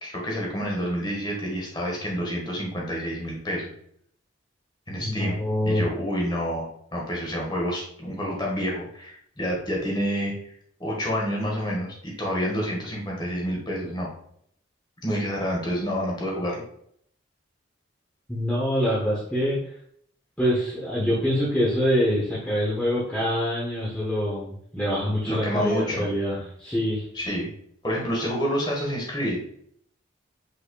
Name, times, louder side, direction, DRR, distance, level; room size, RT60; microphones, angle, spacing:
voice 1, 0.0-3.7 4.9-5.4 5.6-10.3 10.8-14.1 15.0-16.6 25.3-26.0 27.1-27.5 27.8-29.4, equal, 20° left, -2 dB, 1.4 m, -28 dB
voice 2, 5.0-5.9 18.3-19.6 20.4-27.0, equal, 5° left, -8 dB, 0.9 m, -25 dB
5.4 x 4.2 x 2.2 m, 0.67 s
head